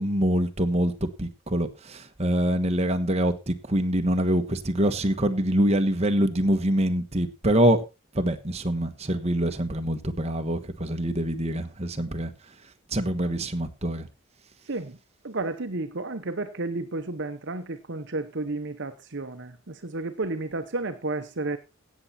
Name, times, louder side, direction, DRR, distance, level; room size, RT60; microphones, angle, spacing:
voice 1, 0.0-7.8 8.1-12.3 12.9-14.1, right 1 dB, 30° right, 1.3 m, -25 dB
voice 2, 15.2-21.6, right 2 dB, 55° right, 1.0 m, -32 dB
17.0 x 7.4 x 4.3 m
head